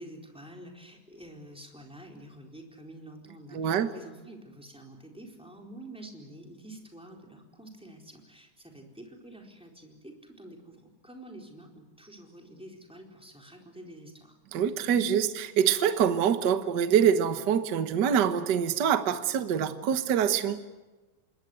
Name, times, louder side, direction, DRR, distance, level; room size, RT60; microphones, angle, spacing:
voice 1, 0.0-14.4, right 1 dB, ahead, 4.0 m, -48 dB
voice 2, 3.5-3.9 14.5-20.6, right 8 dB, 50° right, 1.3 m, -25 dB
27.0 x 21.5 x 8.0 m
omnidirectional pair, 3.4 m